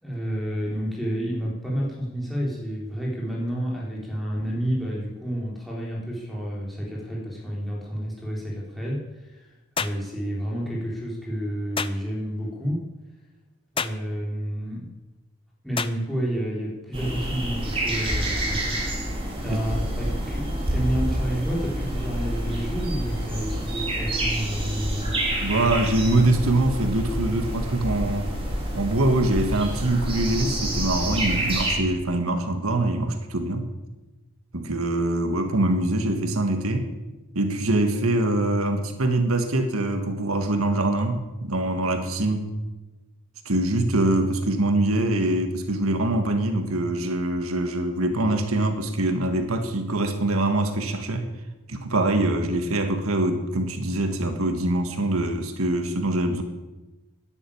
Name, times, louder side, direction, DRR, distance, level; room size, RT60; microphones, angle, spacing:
voice 1, 0.0-12.8 13.7-14.9 15.6-19.0 19.4-25.1, equal, ahead, -5 dB, 3.7 m, -30 dB
sound 1, 9.8-10.0 11.8-12.0 13.8-14.0 15.8-16.0, left 6 dB, 25° left, 0.5 m, -28 dB
sound 2, 16.9-31.7, right 1 dB, 25° right, 3.5 m, -28 dB
voice 2, 25.4-28.3 28.7-33.7 34.5-36.9 37.3-42.5 43.4-51.3 51.7-56.4, right 1 dB, 85° right, 6 dB, 1.7 m, -24 dB
12.5 x 10.5 x 8.7 m, 1.1 s
head